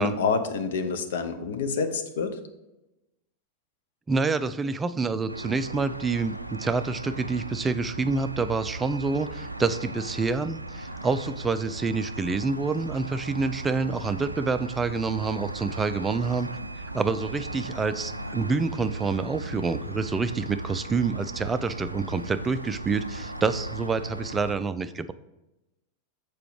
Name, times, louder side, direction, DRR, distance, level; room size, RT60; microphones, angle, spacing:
voice 1, 0.0-2.4, left 5 dB, 60° left, 8 dB, 0.8 m, -27 dB
voice 2, 4.1-16.5 16.9-25.1, right 4 dB, 15° right, 12 dB, 0.4 m, -27 dB
Bus Parking, 5.3-24.6, right 2 dB, 85° right, 0.3 m, -37 dB
6.8 x 4.6 x 4.7 m, 0.96 s
figure-of-eight pair, 90°, 0 cm